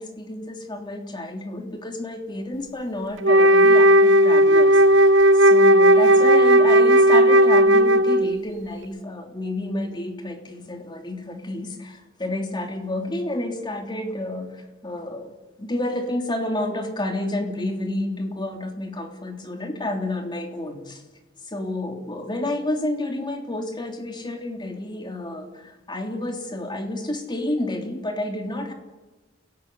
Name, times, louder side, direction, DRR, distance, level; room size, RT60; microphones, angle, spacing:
voice 1, 0.0-21.0 21.5-28.7, left 1 dB, 25° left, 3 dB, 3.2 m, -30 dB
Wind instrument woodwind instrument, 3.2-8.4, right 1 dB, 80° right, 0.9 m, -14 dB
28.5 x 17.5 x 8.4 m, 1.2 s
head